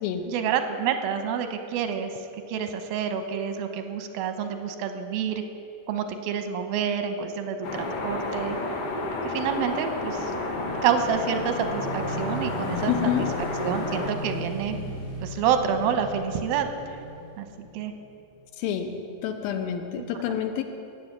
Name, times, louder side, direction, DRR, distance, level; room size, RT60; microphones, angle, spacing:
voice 1, 0.3-2.1 2.5-5.4 5.9-8.6 9.2-10.3 10.8-12.9 13.6-14.8 15.2-16.7 17.4-17.5 17.7-17.9 20.0-20.1, right 8 dB, 90° right, 7 dB, 2.7 m, -28 dB
sound 1, 7.6-14.1, left 2 dB, 50° left, 2.0 m, -31 dB
Motorcycle / Engine, 9.7-18.2, equal, 30° left, 3.7 m, -37 dB
voice 2, 12.9-13.3 18.6-19.0 19.2-20.6, left 9 dB, 85° left, 7 dB, 2.8 m, -28 dB
18.0 x 7.9 x 7.4 m, 2.6 s
omnidirectional pair, 4.1 m